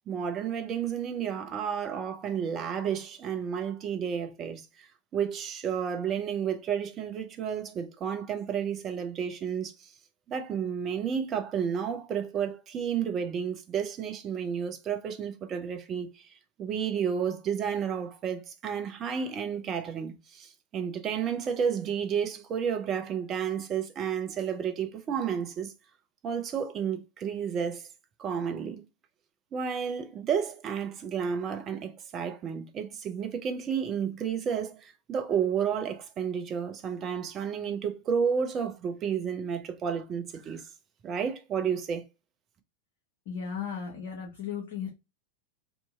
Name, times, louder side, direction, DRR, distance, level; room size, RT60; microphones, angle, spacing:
voice 1, 0.1-9.9 10.3-25.7 26.2-27.9 28.2-28.8 29.5-40.7 41.0-42.0, right 7 dB, 30° right, 0.6 m, -31 dB
voice 2, 43.3-44.9, left 7 dB, 50° left, 0.7 m, -35 dB
2.7 x 2.7 x 2.3 m
figure-of-eight pair, 90°, 0 cm